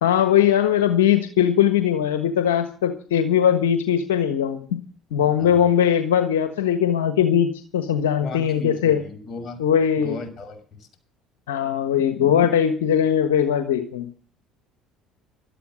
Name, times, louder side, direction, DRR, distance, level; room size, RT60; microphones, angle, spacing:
voice 1, 0.0-4.8 5.1-9.0 9.6-10.2 11.5-14.1, left 9 dB, 85° left, 1.3 m, -20 dB
voice 2, 8.2-9.7 10.0-10.9, left 2 dB, 40° left, 6.2 m, -36 dB
13.0 x 12.5 x 6.3 m
hypercardioid pair, 70°, 0 cm